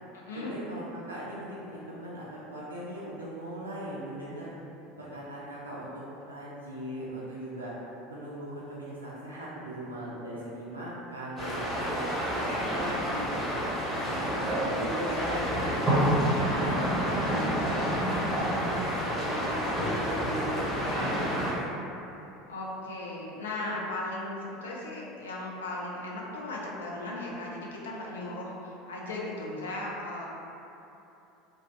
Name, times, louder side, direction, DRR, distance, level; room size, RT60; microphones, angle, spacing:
voice 1, 0.4-4.6 5.0-7.7 8.1-12.0 12.4-16.2 16.6-16.8 17.1-21.7, right 1 dB, 80° right, -7 dB, 0.3 m, -39 dB
sound 1, 11.4-21.5, equal, ahead, 1.3 m, -29 dB
voice 2, 16.5-16.9 22.5-30.3, left 2 dB, 70° left, -3 dB, 0.4 m, -37 dB
2.5 x 2.1 x 3.1 m, 2.9 s
figure-of-eight pair, 70°, 0 cm